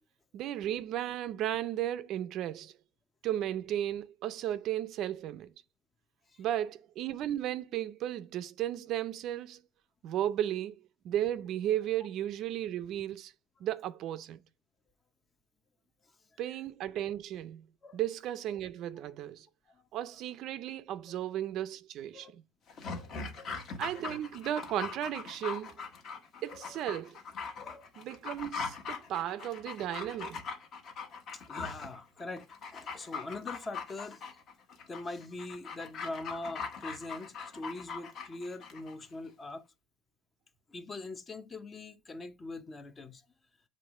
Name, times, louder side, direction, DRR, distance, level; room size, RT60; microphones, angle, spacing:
voice 1, 0.3-2.7 3.2-5.5 6.4-9.6 10.0-10.8 11.0-13.3 13.6-14.4 16.4-17.7 17.9-19.5 19.9-22.4 23.8-25.8 26.4-27.2 28.0-30.4, right 12 dB, 50° right, 0.4 m, -35 dB
Dog, 22.7-38.9 39.2-39.3, left 5 dB, 40° left, 1.3 m, -41 dB
voice 2, 22.8-23.6 23.9-24.2 26.5-26.8 27.6-27.9 31.3-34.2 34.9-39.6 40.7-43.2, left 2 dB, 20° left, 0.6 m, -43 dB
7.8 x 3.1 x 4.8 m
cardioid pair, 145°, 0 cm